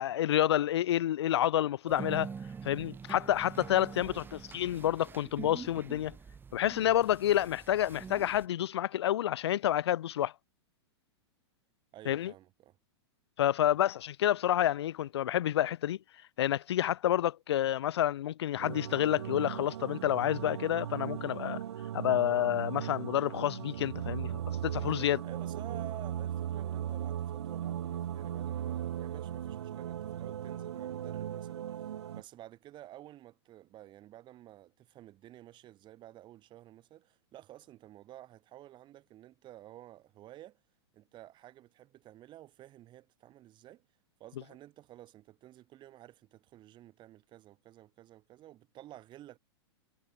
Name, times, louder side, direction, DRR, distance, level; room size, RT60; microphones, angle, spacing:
voice 1, 0.0-2.3 2.6-4.1 4.5-6.1 6.5-10.3 12.1-12.3 13.4-16.0 16.4-21.6 21.9-25.2, left 12 dB, 70° left, 1.0 m, -29 dB
sound 1, 1.9-8.5, right 6 dB, 15° right, 1.1 m, -45 dB
voice 2, 11.9-12.8 13.6-13.8 25.2-40.6 40.9-43.9 44.2-49.4, right 14 dB, 30° right, 7.4 m, -52 dB
sound 2, 18.6-32.2, right 10 dB, 75° right, 0.8 m, -37 dB
hypercardioid pair, 115°, 14 cm